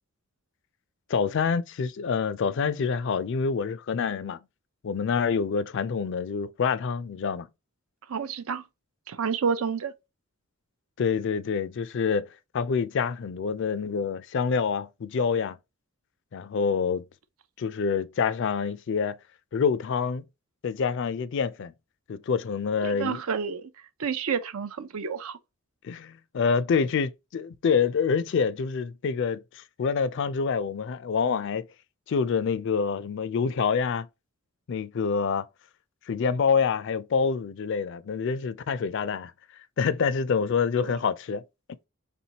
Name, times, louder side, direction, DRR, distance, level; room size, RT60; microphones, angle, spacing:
voice 1, 1.1-4.4 4.8-7.5 11.0-12.3 12.5-15.6 16.3-17.0 17.6-19.2 19.5-20.2 20.6-21.7 22.1-23.2 25.8-31.7 32.1-34.1 34.7-35.4 36.1-39.3 39.8-41.4, left 5 dB, 55° left, 0.4 m, -26 dB
voice 2, 8.1-8.6 9.1-9.9 22.8-23.7 24.0-25.4 40.8-41.0, right 6 dB, 80° right, 0.6 m, -29 dB
4.3 x 3.5 x 2.8 m
head